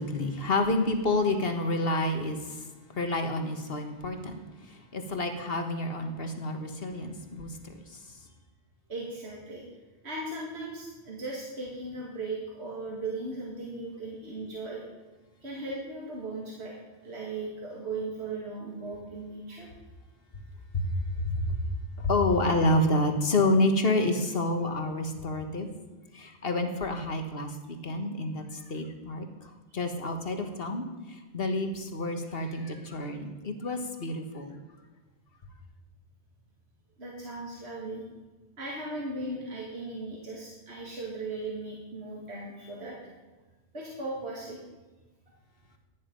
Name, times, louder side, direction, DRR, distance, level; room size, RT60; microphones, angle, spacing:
voice 1, 0.0-8.2 20.7-21.6 22.0-25.7 26.1-34.6, left 2 dB, 55° left, 6 dB, 1.6 m, -29 dB
voice 2, 8.9-9.6 10.0-14.8 15.4-16.7 17.0-19.7 37.0-38.0 38.6-43.0 43.7-44.6, right 2 dB, 65° right, -3 dB, 2.4 m, -37 dB
15.5 x 9.7 x 5.3 m, 1.2 s
omnidirectional pair, 1.2 m